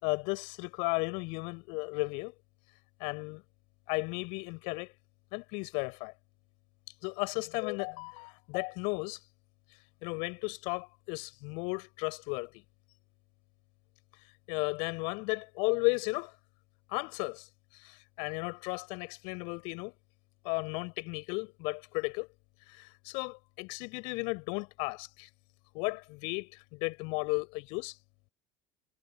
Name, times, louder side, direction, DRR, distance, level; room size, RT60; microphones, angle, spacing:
voice 1, 0.0-2.3 3.0-3.4 3.9-4.9 5.3-6.1 7.0-9.2 10.0-12.6 14.5-16.3 16.9-17.5 17.7-19.9 20.4-22.3 22.7-25.3 25.7-28.0, left 32 dB, 55° left, 4.6 m, -34 dB
figure-of-eight pair, 70°, 11 cm